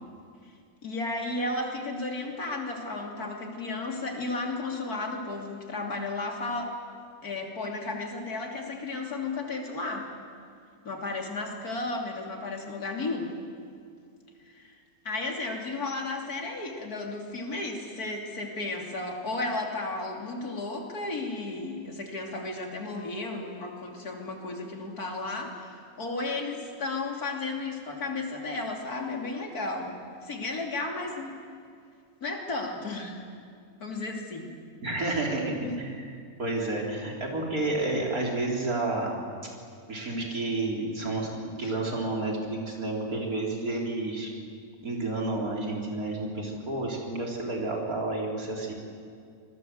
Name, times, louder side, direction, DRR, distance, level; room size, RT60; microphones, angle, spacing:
voice 1, 0.8-6.8 7.2-10.1 10.8-13.3 14.4-14.8 15.1-31.4 32.2-33.2 33.8-34.5 35.6-35.7 41.6-41.7, left 2 dB, 90° left, 1 dB, 3.5 m, -34 dB
voice 2, 34.8-36.1 36.4-39.2 39.9-41.3 41.6-44.3 44.8-48.7, right 2 dB, 75° right, -1 dB, 4.6 m, -30 dB
26.5 x 20.5 x 7.8 m, 2.3 s
omnidirectional pair, 1.5 m